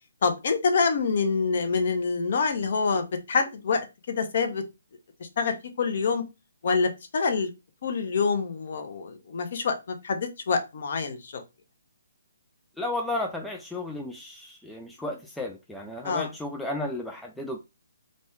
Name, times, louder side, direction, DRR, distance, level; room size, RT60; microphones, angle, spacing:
voice 1, 0.2-3.8 4.1-4.6 5.4-6.2 6.6-7.5 7.8-11.4 16.0-16.3, left 5 dB, 55° left, 0.7 m, -26 dB
voice 2, 12.8-17.6, left 2 dB, 5° left, 0.3 m, -33 dB
2.6 x 2.2 x 3.4 m
figure-of-eight pair, 145°, 0 cm